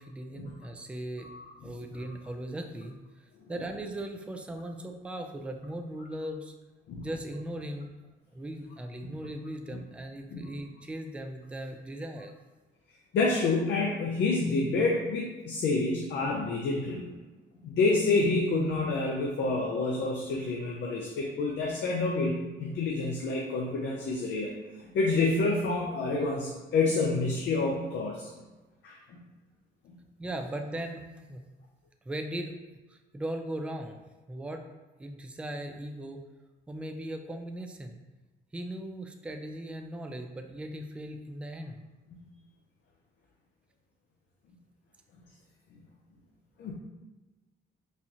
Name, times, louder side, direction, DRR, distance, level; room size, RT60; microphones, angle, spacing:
voice 1, 0.0-1.3 1.6-3.0 3.5-6.5 7.0-12.3 30.2-31.0 31.3-31.5 32.1-32.5 32.9-34.0 34.3-34.6 35.0-36.3 36.7-38.0 38.5-41.8, right 1 dB, 5° right, 4 dB, 0.3 m, -38 dB
voice 2, 1.2-1.5 6.9-7.0 10.3-10.5 13.1-17.1 17.6-24.5 24.9-28.3 28.8-29.2 29.9-30.0 46.6-46.7, left 3 dB, 65° left, -2 dB, 0.6 m, -28 dB
4.2 x 2.3 x 2.8 m, 1.2 s
cardioid pair, 90°, 20 cm